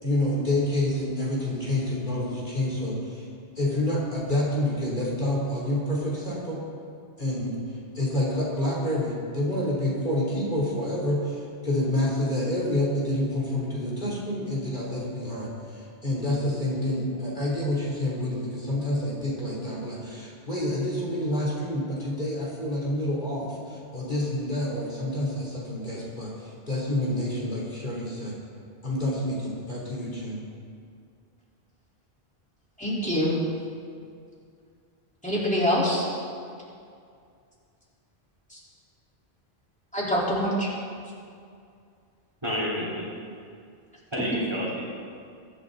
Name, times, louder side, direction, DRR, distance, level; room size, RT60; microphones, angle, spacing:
voice 1, 0.0-3.3 3.6-6.6 7.2-7.5 7.9-28.3 28.8-30.4, left 1 dB, 50° left, -6 dB, 3.5 m, -28 dB
voice 2, 32.8-33.4 35.2-36.1 38.5-38.6 39.9-40.7, equal, 5° left, -7 dB, 4.0 m, -25 dB
voice 3, 42.4-43.1 44.1-44.8, equal, 25° right, -7 dB, 4.1 m, -29 dB
23.5 x 11.0 x 4.0 m, 2.3 s
omnidirectional pair, 1.1 m